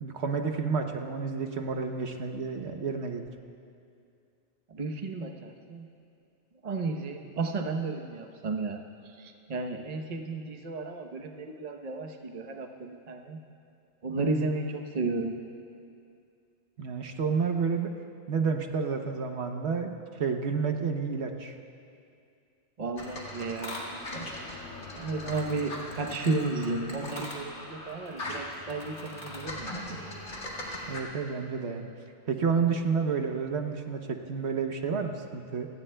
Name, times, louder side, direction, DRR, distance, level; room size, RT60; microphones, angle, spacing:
voice 1, 0.0-3.3 16.8-17.9 18.3-21.6 30.9-31.9 32.2-35.7, right 5 dB, 65° right, 4 dB, 1.1 m, -30 dB
voice 2, 4.7-5.9 6.6-8.8 9.2-13.4 14.0-15.3 22.8-23.9 24.9-29.9, right 3 dB, 35° right, 3 dB, 0.9 m, -33 dB
sound 1, 23.0-31.0, left 1 dB, 75° left, 2.3 m, -39 dB
29.5 x 17.0 x 2.2 m, 2.5 s
omnidirectional pair, 1.2 m